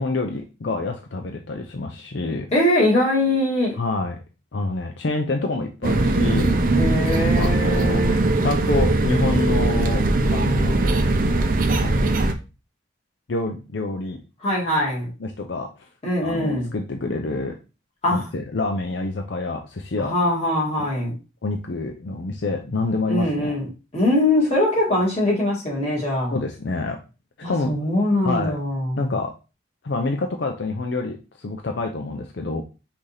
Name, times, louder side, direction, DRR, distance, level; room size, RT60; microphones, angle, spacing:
voice 1, 0.0-2.5 3.8-4.2 4.5-6.6 7.4-8.0 8.4-10.0 10.3-11.0 11.8-12.2 13.3-14.2 15.2-15.7 16.2-17.6 18.1-20.1 20.8-20.9 21.4-23.5 26.3-27.0 27.5-27.7 28.2-28.6 29.0-29.3 29.8-32.6, left 3 dB, 65° left, 3 dB, 0.6 m, -27 dB
voice 2, 2.5-3.8 6.7-8.3 14.4-15.1 16.0-16.7 18.0-18.3 20.0-21.1 23.1-26.3 27.4-29.0, left 1 dB, 35° left, -4 dB, 2.0 m, -22 dB
sound 1, 5.8-12.3, right 2 dB, 45° right, 0.5 m, -20 dB
5.8 x 2.7 x 3.3 m, 0.30 s
head